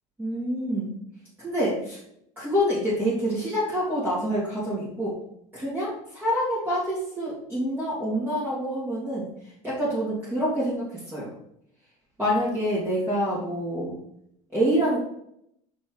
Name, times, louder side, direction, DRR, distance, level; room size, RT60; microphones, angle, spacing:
voice 1, 0.2-0.9 1.4-2.0 2.4-5.2 5.5-9.3 9.6-11.3 12.2-13.9 14.5-15.0, equal, 15° right, -9 dB, 2.6 m, -26 dB
5.9 x 5.1 x 4.8 m, 0.74 s
cardioid pair, 145°, 15 cm